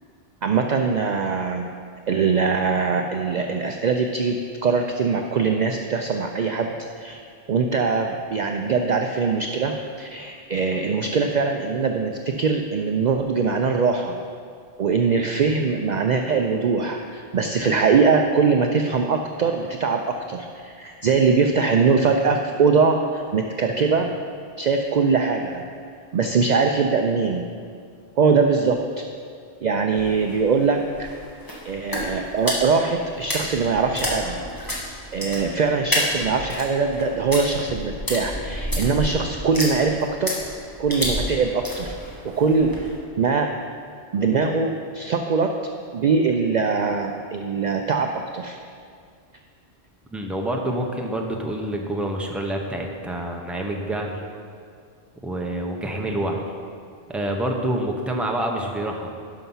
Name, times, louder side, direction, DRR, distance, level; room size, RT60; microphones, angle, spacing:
voice 1, 0.4-1.7 2.1-7.2 7.5-14.2 14.8-24.1 24.6-25.6 26.1-27.4 28.2-28.8 29.6-31.1 31.6-34.4 35.1-40.4 40.8-42.0 42.2-42.7 43.2-43.5 44.1-45.5 45.9-48.6, right 5 dB, 55° right, 4 dB, 0.5 m, -22 dB
sound 1, 29.9-43.0, equal, 20° left, 1.6 m, -30 dB
voice 2, 50.1-54.2 55.2-56.4 57.1-59.2, right 1 dB, ahead, 1 dB, 0.8 m, -27 dB
11.5 x 5.6 x 5.6 m, 2.2 s
omnidirectional pair, 1.1 m